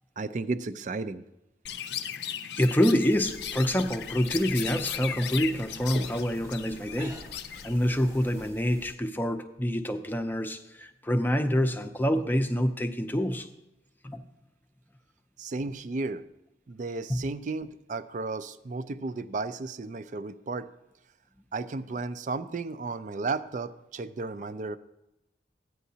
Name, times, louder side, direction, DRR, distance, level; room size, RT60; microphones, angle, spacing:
voice 1, 0.2-1.2 15.4-16.2 16.7-20.7 21.5-24.8, right 3 dB, 45° right, 13 dB, 0.4 m, -34 dB
Chirp tweet, 1.7-8.5, left 9 dB, 65° left, 0.4 m, -37 dB
voice 2, 2.6-7.2 7.6-13.5 14.0-14.2 17.1-17.2, equal, 10° left, 6 dB, 0.5 m, -26 dB
sound 1, 3.1-9.0, equal, 15° right, 0.7 m, -47 dB
14.0 x 9.1 x 2.8 m, 0.92 s
head